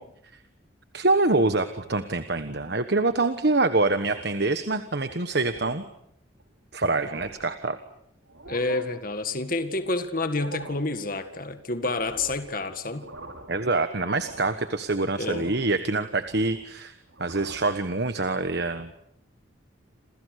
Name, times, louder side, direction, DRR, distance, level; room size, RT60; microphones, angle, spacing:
voice 1, 0.9-5.8 6.7-7.8 13.5-16.9 17.2-18.9, right 2 dB, 55° right, 9 dB, 1.3 m, -25 dB
sound 1, 4.0-4.5 4.9-5.1 5.5-5.8 6.4-6.5 6.8-7.5 8.2-8.8 10.2-10.9 12.0-12.5 12.9-13.6 14.0-14.6 15.2-15.7 16.0-16.7 17.1-17.7, right 2 dB, 75° right, 5.7 m, -44 dB
voice 2, 8.5-13.1 15.1-15.5, left 2 dB, 45° left, 9 dB, 1.9 m, -29 dB
29.0 x 28.0 x 6.6 m, 0.73 s
head